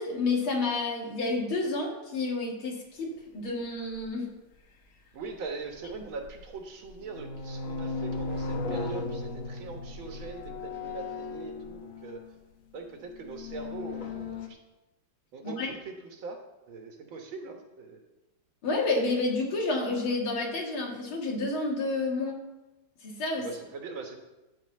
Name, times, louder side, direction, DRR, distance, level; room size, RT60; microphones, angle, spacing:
voice 1, 0.0-4.3 15.4-15.7 18.6-22.4 23.0-23.5, left 3 dB, 85° left, -1 dB, 2.9 m, -30 dB
sound 1, 3.9-4.0 5.8-6.5 6.9-12.3 13.1-14.5, left 3 dB, 50° left, 1.2 m, -36 dB
voice 2, 5.1-12.2 12.7-14.6 15.3-16.4 16.7-18.0 23.4-24.2, right 4 dB, 75° right, 3 dB, 2.1 m, -41 dB
12.5 x 4.4 x 7.6 m, 1.0 s
omnidirectional pair, 2.2 m